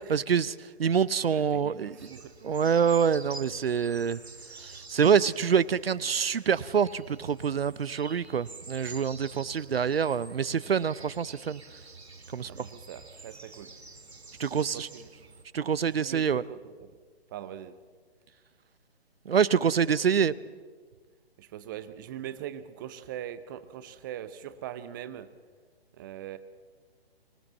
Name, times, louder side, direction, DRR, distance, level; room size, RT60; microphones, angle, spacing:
voice 1, 0.1-2.1 2.4-4.2 4.6-11.6 12.3-12.5 14.4-14.9 15.5-16.4 19.3-20.3, right 7 dB, 65° right, 19 dB, 0.7 m, -26 dB
voice 2, 1.3-2.3 12.5-13.7 14.4-15.1 16.0-17.0 17.3-17.8 21.4-25.3 25.9-26.4, right 11 dB, 20° right, 13 dB, 0.6 m, -41 dB
sound 1, 2.0-15.4, right 3 dB, 80° right, 1.9 m, -48 dB
24.5 x 18.0 x 7.5 m, 1.5 s
figure-of-eight pair, 135°, 32 cm